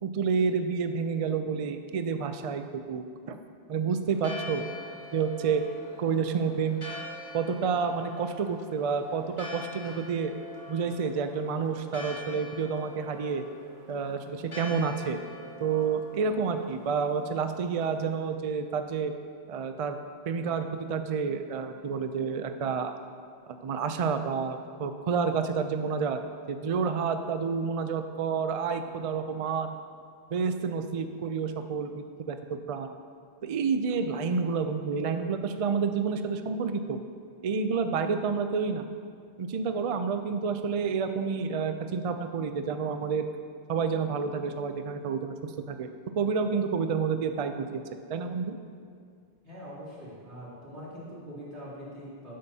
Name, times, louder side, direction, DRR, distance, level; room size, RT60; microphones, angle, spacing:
voice 1, 0.0-3.4 3.7-4.6 5.1-5.6 6.0-6.8 7.3-10.3 10.7-13.4 13.9-15.2 15.6-19.1 19.5-20.0 20.3-22.9 23.5-26.2 26.5-29.8 30.3-32.9 33.4-37.0 37.4-38.8 39.4-43.3 43.7-45.3 45.7-45.9 46.2-47.8 48.1-48.6, right 5 dB, 50° right, 8 dB, 0.4 m, -29 dB
Church bell, 4.1-18.2, left 2 dB, 25° left, 1.5 m, -45 dB
voice 2, 49.4-52.4, equal, 85° right, -8 dB, 3.1 m, -43 dB
12.5 x 8.7 x 2.8 m, 2.2 s
omnidirectional pair, 1.1 m